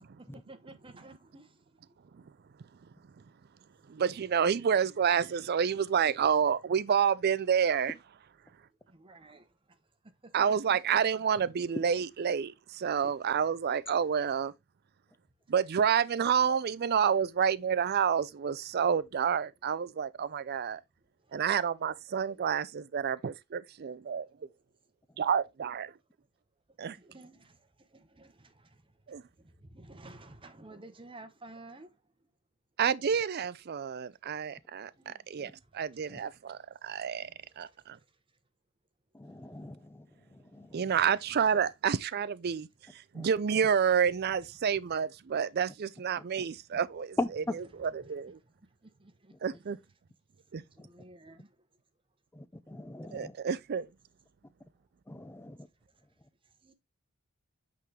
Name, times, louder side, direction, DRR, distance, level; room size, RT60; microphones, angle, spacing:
voice 1, 0.3-2.0 8.4-8.5 8.9-10.8 21.2-21.4 26.7-32.3 35.0-35.3 35.6-36.6 37.2-38.2 40.7-41.1 44.3-44.4 48.0-49.6 50.5-51.6 56.4-56.7, right 2 dB, 25° right, 0.9 m, -54 dB
voice 2, 3.9-7.9 10.3-14.5 15.5-20.8 21.3-24.3 25.2-25.9 26.8-27.0 29.1-29.2 32.8-37.3 37.6-38.0 40.7-42.7 42.9-47.2 48.1-48.4 49.4-49.8 50.5-50.6 53.1-53.9, right 7 dB, 50° right, 0.4 m, -29 dB
voice 3, 39.1-41.0 43.1-43.3 46.2-46.4 47.2-47.5 49.3-49.4 50.8-50.9 52.3-53.4 55.1-55.7 56.2-56.3, left 2 dB, 10° left, 0.5 m, -40 dB
8.4 x 3.8 x 3.3 m
head